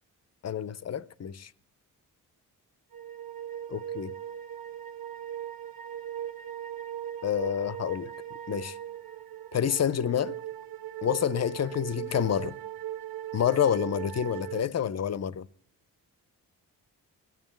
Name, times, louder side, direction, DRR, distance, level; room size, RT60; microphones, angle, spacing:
voice 1, 0.4-1.5 3.7-4.1 7.2-8.1 8.5-8.8 9.5-10.4 11.0-12.6 13.3-15.5, left 9 dB, 40° left, 0.6 m, -28 dB
sound 1, 2.9-14.6, right 11 dB, 55° right, 0.8 m, -39 dB
18.0 x 7.2 x 9.0 m
supercardioid pair, 45°, 41 cm